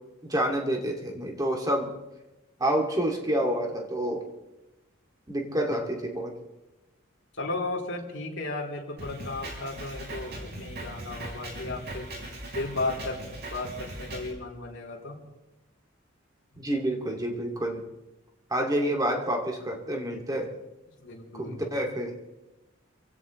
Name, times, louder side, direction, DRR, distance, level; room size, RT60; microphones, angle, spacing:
voice 1, 0.2-1.9 2.6-4.2 5.3-6.3 16.6-17.8 18.5-20.5 21.3-22.1, right 1 dB, 20° right, 2 dB, 2.4 m, -28 dB
voice 2, 7.3-12.1 12.5-13.2 13.5-15.2 21.0-21.7, left 2 dB, 65° left, -2 dB, 3.4 m, -34 dB
Drum kit, 9.0-14.3, right 1 dB, 55° right, 4.7 m, -39 dB
28.0 x 16.0 x 3.2 m, 1.0 s
head